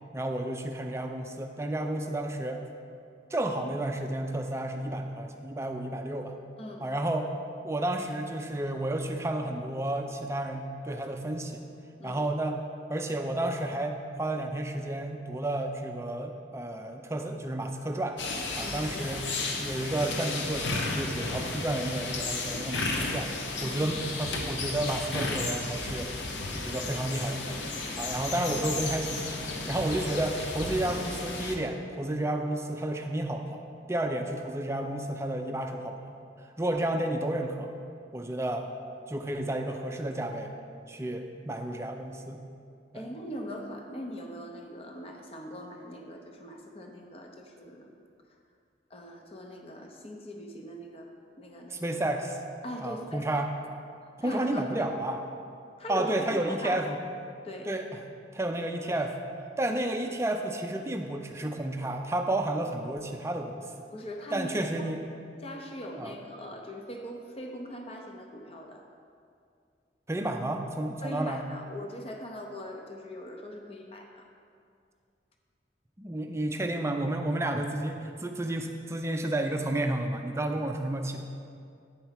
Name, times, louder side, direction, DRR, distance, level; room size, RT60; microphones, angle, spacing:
voice 1, 0.0-2.6 3.3-6.4 6.8-7.3 7.6-11.6 12.0-12.6 12.9-18.2 18.6-19.2 19.6-23.3 23.6-26.1 26.6-27.6 28.0-33.6 33.9-36.2 36.6-37.7 38.1-38.7 39.1-40.5 40.9-42.4 42.9-43.1 51.7-52.4 52.8-53.5 54.2-55.2 55.9-57.0 57.7-58.0 58.3-59.2 59.6-63.6 64.3-65.0 66.0-66.1 70.1-71.5 76.0-81.3, right 1 dB, 15° right, 4 dB, 0.4 m, -31 dB
sound 1, 18.2-31.6, left 3 dB, 80° left, 0.8 m, -33 dB
voice 2, 42.9-47.9 48.9-51.1 51.4-51.9 52.6-53.4 54.0-54.9 55.8-56.8 57.4-57.7 63.9-64.5 64.8-65.0 65.4-68.8 71.0-74.2, equal, 30° left, 2 dB, 0.7 m, -41 dB
9.1 x 4.6 x 5.7 m, 2.4 s
head